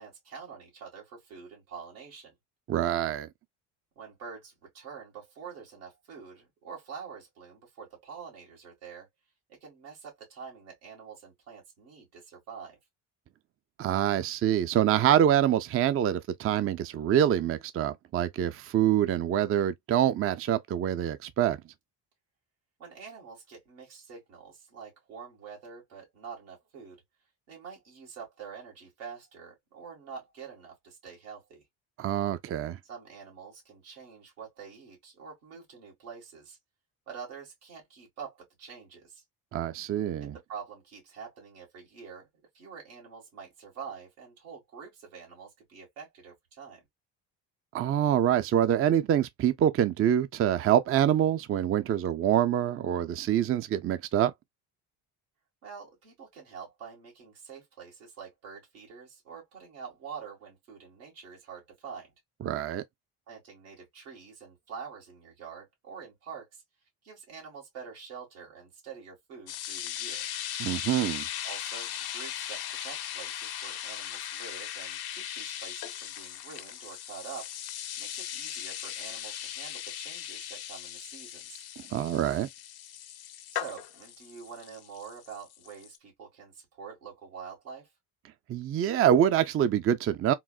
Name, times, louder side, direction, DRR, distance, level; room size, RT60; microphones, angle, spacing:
voice 1, 0.0-2.3 4.0-9.1 9.5-12.8 22.8-27.0 27.5-31.6 32.8-36.6 37.1-39.2 40.2-42.3 42.5-46.8 55.6-62.1 63.3-66.6 67.0-70.3 71.4-77.5 78.0-81.6 83.5-87.9, right 6 dB, 90° right, 1.9 m, -46 dB
voice 2, 2.7-3.3 13.8-21.6 32.0-32.8 39.5-40.3 47.7-54.3 62.4-62.8 70.6-71.3 81.8-82.5 88.5-90.3, right 10 dB, 30° right, 0.4 m, -25 dB
sound 1, 69.5-86.0, left 11 dB, 55° left, 0.6 m, -38 dB
3.8 x 2.1 x 2.3 m
supercardioid pair, 65°, 47 cm